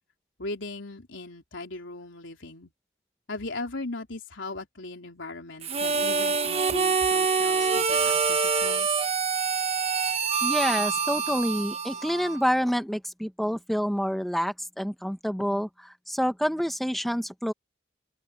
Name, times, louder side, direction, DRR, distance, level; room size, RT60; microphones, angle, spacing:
voice 1, 0.4-2.7 3.3-8.9, left 2 dB, 85° left, 3.9 m, -38 dB
Harmonica, 5.6-12.5, right 5 dB, 30° right, 0.9 m, -26 dB
voice 2, 10.4-17.5, equal, ahead, 1.1 m, -28 dB
open air
head